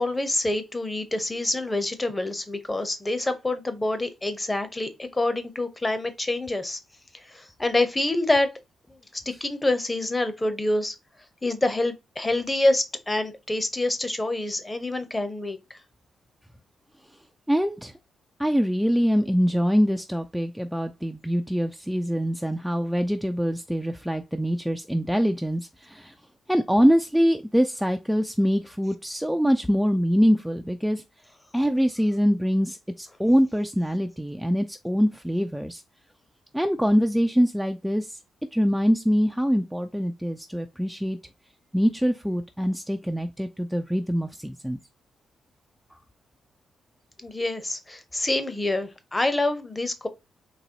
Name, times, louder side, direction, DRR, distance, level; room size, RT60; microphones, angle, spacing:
voice 1, 0.0-6.8 7.1-8.5 9.4-10.9 11.4-15.6 47.2-50.1, left 2 dB, 20° left, 0.8 m, -26 dB
voice 2, 17.5-17.9 18.4-26.1 26.5-31.0 31.5-35.8 36.5-38.2 38.5-41.2 41.7-44.8, equal, 5° right, 0.4 m, -24 dB
4.1 x 2.9 x 2.9 m
cardioid pair, 75°, 0 cm